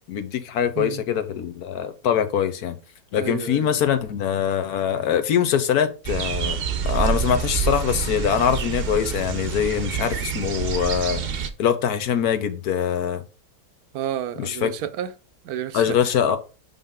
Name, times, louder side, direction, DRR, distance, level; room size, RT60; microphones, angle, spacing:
voice 1, 0.1-2.8 3.1-11.2 11.6-13.2 14.4-14.7 15.7-16.4, left 8 dB, 90° left, 1.4 m, -23 dB
voice 2, 3.2-3.8 13.9-15.1 15.4-16.1, right 10 dB, 85° right, 1.1 m, -31 dB
sound 1, 6.0-11.5, right 7 dB, 50° right, 0.7 m, -27 dB
5.5 x 5.5 x 3.6 m
omnidirectional pair, 1.6 m